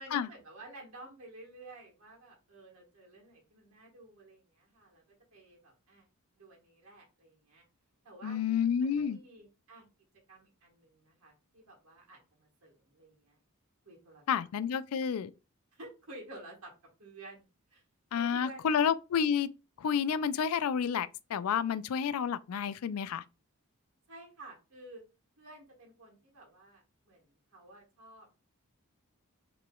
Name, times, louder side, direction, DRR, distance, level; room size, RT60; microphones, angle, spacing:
voice 1, 0.0-5.0 5.3-6.1 6.4-7.6 8.0-9.8 10.3-13.4 13.8-14.5 15.7-16.7 17.0-17.8 18.1-18.8 24.1-25.0 25.4-28.3, right 2 dB, 75° right, 1.4 m, -52 dB
voice 2, 8.2-9.2 14.3-15.3 18.1-19.5 19.8-23.2, left 7 dB, 80° left, 0.4 m, -30 dB
5.8 x 3.0 x 2.3 m
head